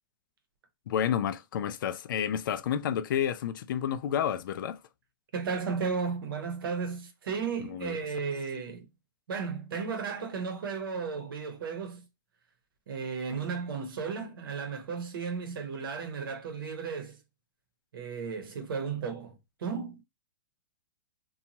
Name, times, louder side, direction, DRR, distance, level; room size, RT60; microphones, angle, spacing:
voice 1, 0.9-4.8 7.6-8.0, left 9 dB, 70° left, 0.4 m, -30 dB
voice 2, 5.3-8.9 9.3-12.0 12.9-17.2 17.9-20.0, right 5 dB, 80° right, 0.9 m, -34 dB
2.7 x 2.3 x 2.8 m
hypercardioid pair, 150°, 11 cm